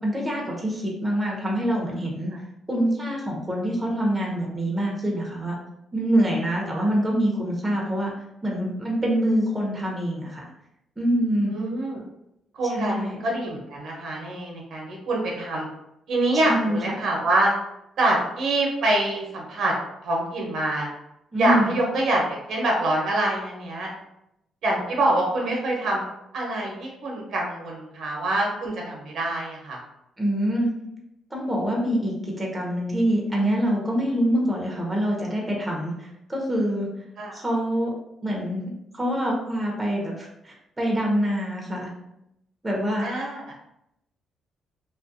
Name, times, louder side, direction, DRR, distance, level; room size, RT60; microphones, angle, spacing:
voice 1, 0.0-2.3 2.7-5.5 5.9-8.1 8.4-10.4 11.0-11.5 12.7-13.1 16.4-16.9 21.3-21.8 30.2-30.7 31.3-36.9 37.3-37.9 38.2-38.6 38.9-41.9 42.6-43.1, equal, 15° right, -2 dB, 0.7 m, -25 dB
voice 2, 11.5-12.0 12.5-15.7 16.1-17.5 18.0-19.7 20.0-20.9 21.4-23.9 24.6-26.0 26.3-29.8 37.2-37.4 43.0-43.5, right 1 dB, 70° right, -1 dB, 0.7 m, -25 dB
2.3 x 2.1 x 2.6 m, 0.83 s
cardioid pair, 90°, 0 cm